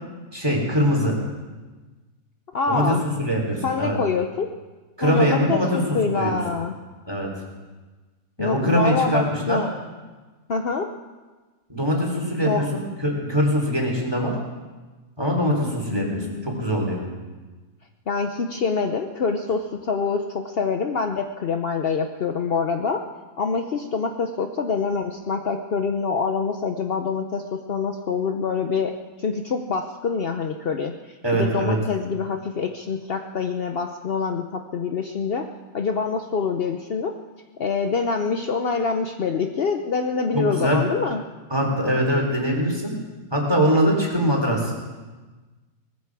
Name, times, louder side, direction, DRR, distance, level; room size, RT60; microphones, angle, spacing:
voice 1, 0.3-1.1 2.7-4.0 5.0-6.4 7.1-7.3 8.4-9.6 11.7-14.3 15.2-17.0 31.2-31.8 40.3-40.8 41.5-42.9 43.3-44.7, equal, 15° right, -1 dB, 3.6 m, -22 dB
voice 2, 2.5-3.0 3.6-4.5 5.0-6.8 8.4-9.7 10.5-10.9 12.4-12.7 15.9-16.7 18.1-23.0 23.4-35.5 35.7-37.1 37.6-41.2, left 5 dB, 65° left, 5 dB, 0.5 m, -25 dB
19.5 x 15.0 x 4.8 m, 1.3 s
omnidirectional pair, 2.0 m